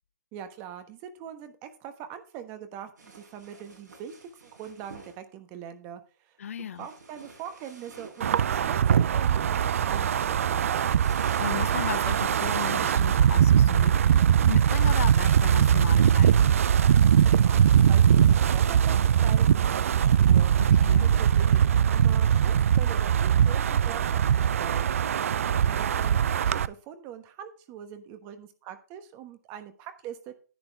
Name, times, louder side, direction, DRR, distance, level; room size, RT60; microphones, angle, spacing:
voice 1, 0.3-10.8 17.2-20.5 21.0-24.9 25.6-30.3, right 9 dB, 20° right, 1.1 m, -42 dB
sound 1, 3.0-5.2 6.8-8.6 10.7-13.0 14.7-18.9, right 3 dB, 80° right, 6.1 m, -50 dB
voice 2, 6.4-6.9 11.4-16.6 20.6-21.1, left 8 dB, 55° left, 0.5 m, -36 dB
Wind, 8.2-26.7, right 9 dB, 50° right, 0.5 m, -21 dB
10.5 x 8.8 x 3.4 m
hypercardioid pair, 155°, 9 cm